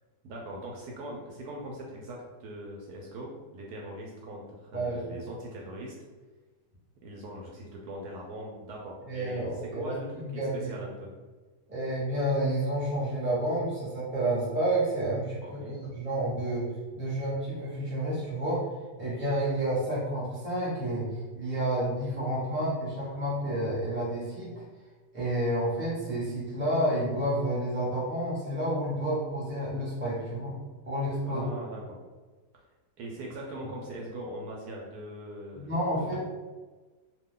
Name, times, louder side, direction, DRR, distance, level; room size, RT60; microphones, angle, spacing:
voice 1, 0.2-5.9 7.0-9.5 9.8-10.1 10.3-11.1 15.4-15.8 31.2-32.0 33.0-36.2, right 1 dB, 75° right, -1 dB, 1.0 m, -41 dB
voice 2, 9.1-10.7 11.7-16.7 16.9-18.7 19.0-24.6 25.1-30.5 30.8-31.5 35.5-36.2, right 1 dB, 10° right, -7 dB, 0.7 m, -30 dB
2.7 x 2.2 x 3.6 m, 1.3 s
omnidirectional pair, 1.8 m